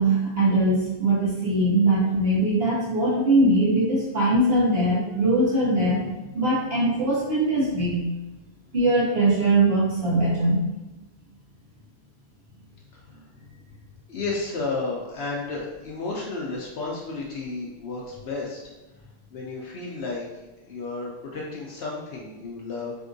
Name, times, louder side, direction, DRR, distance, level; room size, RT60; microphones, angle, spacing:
voice 1, 0.0-6.1 6.3-8.0 8.7-10.6, right 1 dB, 70° right, -9 dB, 1.5 m, -21 dB
voice 2, 14.1-18.6 19.3-20.3 20.7-22.9, left 3 dB, 75° left, -3 dB, 0.8 m, -32 dB
3.5 x 2.6 x 2.6 m, 1.0 s
omnidirectional pair, 1.1 m